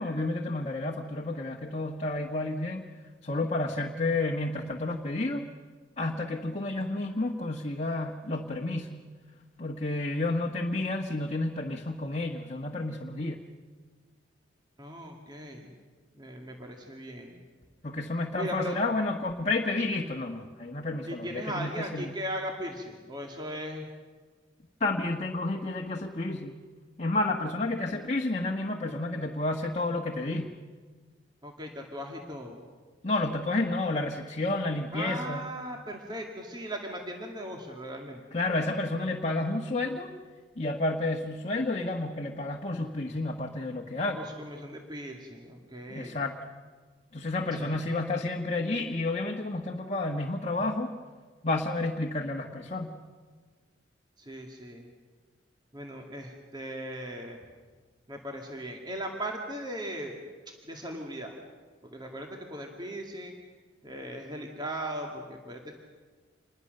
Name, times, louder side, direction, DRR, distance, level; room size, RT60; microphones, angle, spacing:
voice 1, 0.0-2.8 3.2-5.5 6.0-9.0 9.6-13.4 17.8-22.1 24.8-26.5 27.0-30.5 33.0-35.5 38.3-40.1 40.6-44.2 45.9-46.4 47.1-50.9 51.4-53.0, left 2 dB, 35° left, 1 dB, 1.3 m, -30 dB
voice 2, 14.8-15.7 16.1-17.4 18.3-18.8 21.1-23.9 31.4-32.6 34.9-38.2 44.1-46.2 47.6-47.8 54.2-54.9 55.7-57.4 58.1-60.2 60.5-61.4 61.9-63.3 63.8-65.7, equal, 25° right, 1 dB, 2.2 m, -38 dB
27.5 x 21.0 x 6.6 m, 1.4 s
head